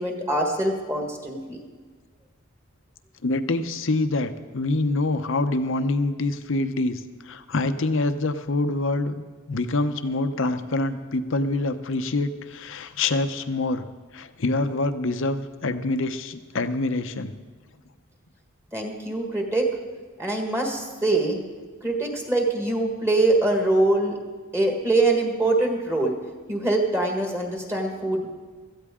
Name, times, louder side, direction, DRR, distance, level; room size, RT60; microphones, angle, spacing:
voice 1, 0.0-1.6 18.7-19.7 20.2-21.4 21.8-24.2 24.5-26.1 26.5-28.3, right 2 dB, 15° right, 1 dB, 1.6 m, -23 dB
voice 2, 3.2-13.9 14.1-17.3, left 2 dB, 65° left, 10 dB, 0.7 m, -26 dB
17.0 x 13.5 x 3.7 m, 1.5 s
head